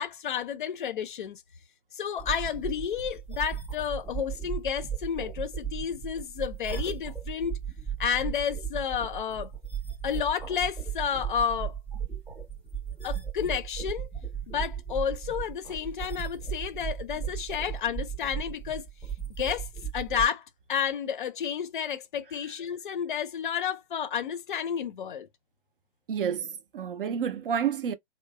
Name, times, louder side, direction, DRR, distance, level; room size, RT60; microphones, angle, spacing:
voice 1, 0.0-1.4 1.9-7.6 8.0-9.5 10.0-11.7 13.0-14.1 14.5-18.8 19.4-19.7 19.9-25.3, left 8 dB, 50° left, 0.4 m, -31 dB
sound 1, 2.2-20.3, right 8 dB, 10° right, 0.6 m, -36 dB
voice 2, 26.1-27.9, right 8 dB, 55° right, 0.4 m, -29 dB
3.0 x 2.0 x 2.2 m
figure-of-eight pair, 135°, 33 cm